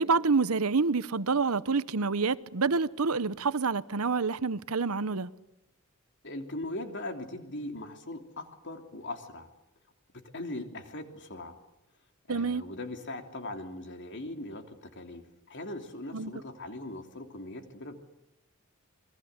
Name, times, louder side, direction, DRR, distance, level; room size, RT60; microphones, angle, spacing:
voice 1, 0.0-5.3 12.3-12.6 16.1-16.3, right 4 dB, 85° right, 0.9 m, -27 dB
voice 2, 6.2-9.5 10.3-11.6 12.3-18.0, left 1 dB, 55° left, 3.1 m, -40 dB
27.5 x 21.5 x 8.2 m
head